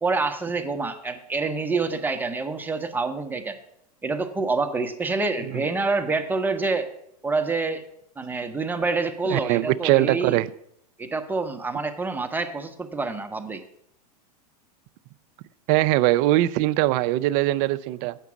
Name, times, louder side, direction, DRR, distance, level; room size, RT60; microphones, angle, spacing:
voice 1, 0.0-3.6 4.0-6.9 7.2-7.8 8.2-10.4 11.0-13.6, right 3 dB, 10° right, 6 dB, 0.8 m, -27 dB
voice 2, 9.3-10.5 15.7-18.2, right 16 dB, 45° right, 15 dB, 0.4 m, -21 dB
8.2 x 6.0 x 7.1 m, 0.74 s
hypercardioid pair, 120°, 20 cm